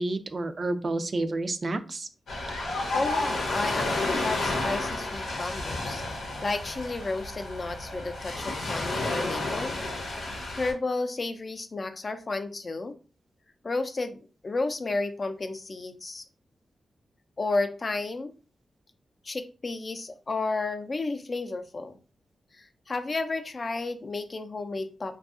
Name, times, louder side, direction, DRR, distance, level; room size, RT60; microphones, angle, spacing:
voice 1, 0.0-2.1, right 2 dB, 50° right, 10 dB, 0.3 m, -30 dB
Ocean, 2.3-10.7, left 2 dB, 90° left, 0.7 m, -31 dB
voice 2, 2.9-6.0 6.4-9.7 10.5-12.9 13.6-16.2 17.4-18.3 19.2-22.0 22.5-25.2, left 3 dB, 45° left, 7 dB, 0.4 m, -32 dB
2.6 x 2.3 x 2.4 m, 0.35 s
cardioid pair, 55°, 0 cm